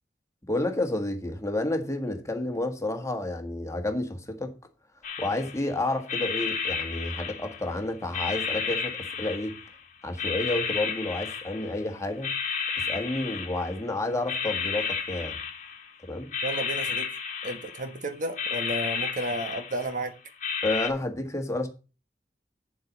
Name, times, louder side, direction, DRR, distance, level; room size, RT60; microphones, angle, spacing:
voice 1, 0.5-4.5 5.2-9.6 10.0-12.3 12.9-15.4 16.0-16.3 20.6-21.7, left 2 dB, 15° left, 1.5 m, -30 dB
sound 1, 5.0-5.7 6.1-7.8 8.1-9.8 10.2-11.8 12.2-13.9 14.3-15.9 16.3-18.0 18.4-20.0 20.4-20.9, left 6 dB, 45° left, 1.5 m, -32 dB
voice 2, 16.4-17.1 17.4-20.1, right 1 dB, 45° right, 1.1 m, -32 dB
8.6 x 7.7 x 4.0 m
head